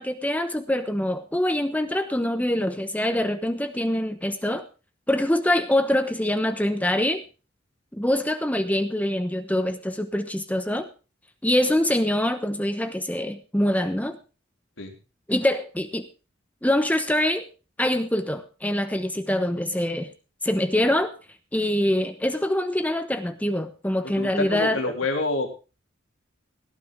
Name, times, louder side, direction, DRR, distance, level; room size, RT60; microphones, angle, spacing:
voice 1, 0.0-4.6 5.1-7.2 7.9-10.9 11.4-14.2 15.3-16.1 16.6-17.4 17.8-20.1 20.4-21.1 21.5-24.8, left 1 dB, 10° left, 8 dB, 1.0 m, -24 dB
voice 2, 24.0-25.5, left 3 dB, 75° left, 3 dB, 3.5 m, -27 dB
17.5 x 12.0 x 3.7 m, 0.32 s
head